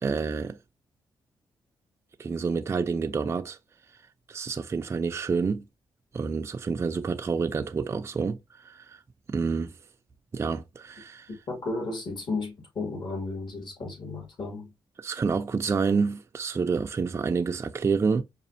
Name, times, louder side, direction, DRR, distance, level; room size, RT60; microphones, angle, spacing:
voice 1, 0.0-0.6 2.2-3.6 4.3-5.6 6.1-8.4 8.6-9.0 9.3-9.7 10.3-11.3 15.0-18.2, right 5 dB, 30° right, 0.3 m, -28 dB
voice 2, 11.5-14.7, left 3 dB, 55° left, 1.9 m, -33 dB
5.0 x 2.4 x 2.6 m
cardioid pair, 110°, 10 cm